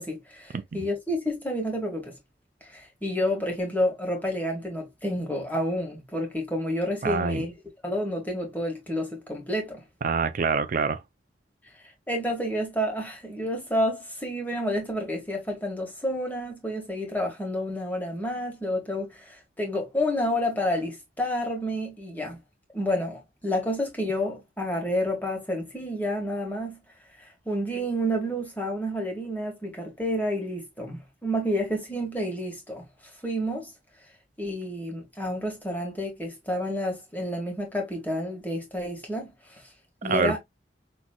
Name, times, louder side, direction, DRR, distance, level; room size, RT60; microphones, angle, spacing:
voice 1, 0.0-2.1 2.6-7.5 7.8-9.8 11.8-22.4 22.7-26.8 27.2-32.9 33.2-33.7 34.4-39.6 40.0-40.4, equal, 10° left, 1.6 m, -29 dB
voice 2, 7.0-7.4 10.0-11.0 40.0-40.4, right 5 dB, 50° right, 0.4 m, -25 dB
6.0 x 3.0 x 2.2 m
head